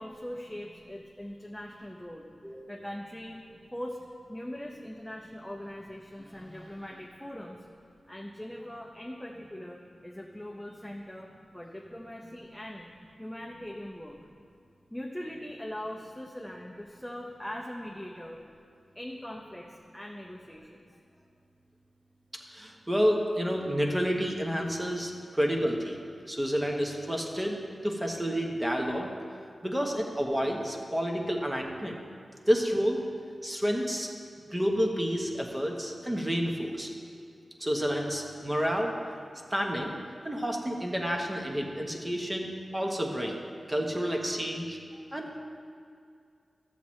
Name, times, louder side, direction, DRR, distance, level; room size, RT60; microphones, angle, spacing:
voice 1, 0.0-2.3 2.7-3.5 3.7-4.0 4.3-7.6 8.1-12.9 13.2-14.2 14.9-18.4 18.9-20.8 39.3-39.4 44.9-45.0, left 1 dB, 5° left, -2 dB, 0.7 m, -41 dB
voice 2, 2.4-2.9 22.5-26.0 26.3-27.6 27.8-29.1 29.6-32.0 32.5-33.0 33.4-34.1 34.5-36.9 37.6-38.9 39.5-39.9 40.2-43.4 43.7-44.8 45.1-45.4, equal, 15° right, 1 dB, 1.0 m, -29 dB
13.0 x 7.4 x 3.1 m, 2.3 s
wide cardioid pair, 75°, 0 cm